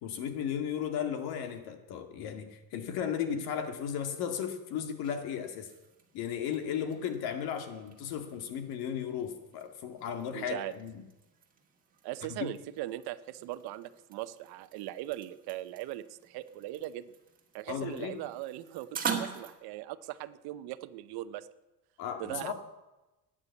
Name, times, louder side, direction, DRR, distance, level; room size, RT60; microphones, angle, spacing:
voice 1, 0.0-5.7 6.1-11.0 12.4-12.5 17.7-18.2 22.0-22.5, left 8 dB, 75° left, 7 dB, 2.1 m, -35 dB
sound 1, 4.7-19.5, right 6 dB, 20° right, 1.8 m, -45 dB
voice 2, 10.3-10.7 12.0-17.2 17.5-21.5 22.2-22.5, right 15 dB, 75° right, 14 dB, 0.8 m, -39 dB
15.0 x 10.0 x 8.3 m, 1.1 s
cardioid pair, 170°, 38 cm